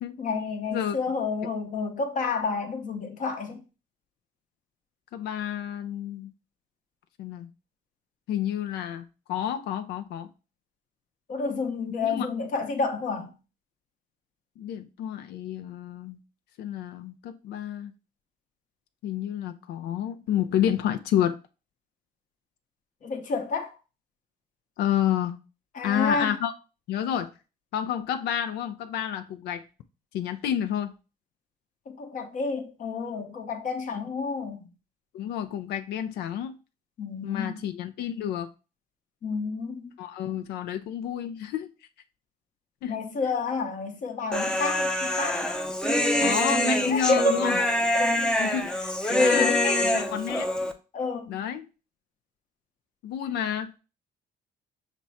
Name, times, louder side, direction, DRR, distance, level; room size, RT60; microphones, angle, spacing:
voice 1, 0.2-3.6 11.3-13.3 23.0-23.8 25.7-26.3 31.9-34.7 37.0-37.6 39.2-39.9 42.9-45.5 46.9-48.3 49.0-49.9 50.9-51.4, left 4 dB, 50° left, 0.9 m, -30 dB
voice 2, 5.1-6.3 7.2-7.5 8.3-10.3 12.0-12.3 14.6-16.2 16.6-17.9 19.0-21.4 24.8-25.4 25.8-26.5 26.9-27.3 27.7-29.7 30.1-30.9 35.1-36.6 37.2-38.5 40.0-41.7 42.8-43.0 46.2-47.6 48.4-49.5 49.8-50.5 51.3-51.6 53.0-53.7, left 10 dB, 75° left, 0.5 m, -29 dB
Human voice, 44.3-50.7, left 1 dB, 5° left, 0.5 m, -25 dB
6.0 x 2.2 x 4.0 m
cardioid pair, 110°, 17 cm